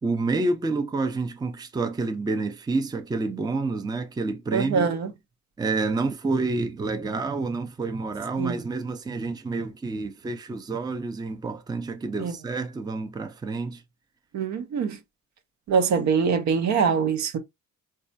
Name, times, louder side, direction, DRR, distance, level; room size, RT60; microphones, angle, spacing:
voice 1, 0.0-4.9 5.6-13.8 16.0-16.1, right 3 dB, 15° right, 0.5 m, -28 dB
voice 2, 4.5-5.1 8.4-8.6 12.2-12.3 14.3-15.0 15.7-17.4, right 6 dB, 65° right, 0.7 m, -23 dB
4.1 x 2.3 x 2.6 m
cardioid pair, 90°, 30 cm